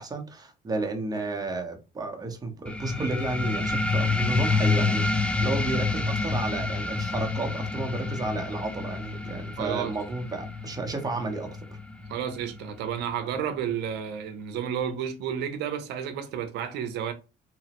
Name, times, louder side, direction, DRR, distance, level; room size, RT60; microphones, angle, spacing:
voice 1, 0.0-11.7, right 2 dB, 20° right, 0.7 m, -32 dB
sound 1, 2.7-13.7, left 3 dB, 5° left, 0.3 m, -28 dB
voice 2, 9.6-10.0 12.1-17.1, right 8 dB, 85° right, 0.6 m, -31 dB
2.9 x 2.0 x 2.9 m
cardioid pair, 110°, 17 cm